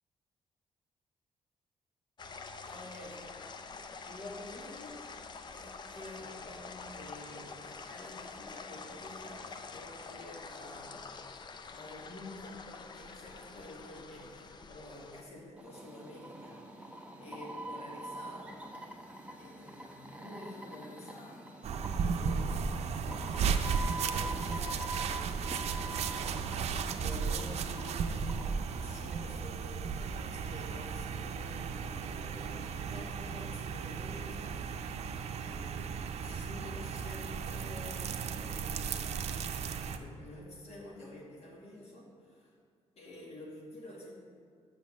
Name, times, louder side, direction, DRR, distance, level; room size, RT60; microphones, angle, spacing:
sound 1, 2.2-15.2, left 4 dB, 40° left, 0.5 m, -47 dB
voice 1, 2.6-3.2 4.0-5.2 5.5-18.6 19.3-21.4 22.0-22.5 23.0-23.2 23.8-26.1 26.5-28.5 28.8-39.2 39.9-42.6 43.0-44.1, left 1 dB, 65° left, -3 dB, 2.2 m, -50 dB
sound 2, 15.6-29.1, right 1 dB, 10° right, 1.0 m, -45 dB
sound 3, 21.6-40.0, right 6 dB, 65° right, 0.6 m, -35 dB
7.3 x 6.5 x 7.4 m, 2.2 s
cardioid pair, 120°, 12 cm